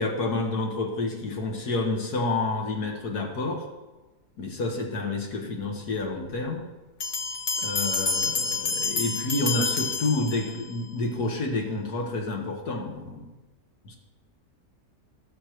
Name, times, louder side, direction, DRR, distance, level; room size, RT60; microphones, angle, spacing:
voice 1, 0.0-3.6 4.4-6.7 7.6-13.3 13.9-14.0, left 2 dB, 70° left, 1 dB, 1.9 m, -29 dB
sound 1, 7.0-10.8, left 4 dB, 40° left, 1.0 m, -28 dB
19.0 x 7.1 x 3.0 m, 1.2 s
omnidirectional pair, 1.8 m